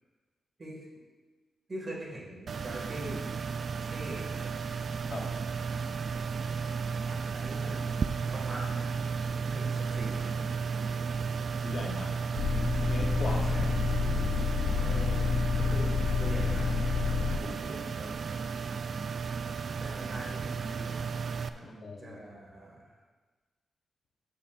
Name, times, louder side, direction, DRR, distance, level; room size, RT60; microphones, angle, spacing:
voice 1, 1.7-3.2 3.8-4.6 7.0-8.0 8.3-9.0 9.5-11.0 13.4-14.1 14.8-15.2 15.6-16.7 17.2-18.4 19.8-21.1 21.5-23.0, right 1 dB, 30° right, -2 dB, 2.0 m, -43 dB
sound 1, 2.5-21.5, right 5 dB, 50° right, 0.3 m, -34 dB
voice 2, 5.0-5.4 11.6-12.2 12.9-13.6 17.4-17.6 21.6-22.2, left 3 dB, 50° left, 2 dB, 0.9 m, -39 dB
sound 2, 12.4-17.4, left 5 dB, 80° left, 0.5 m, -29 dB
12.5 x 6.9 x 2.5 m, 1.3 s
wide cardioid pair, 135°, 0 cm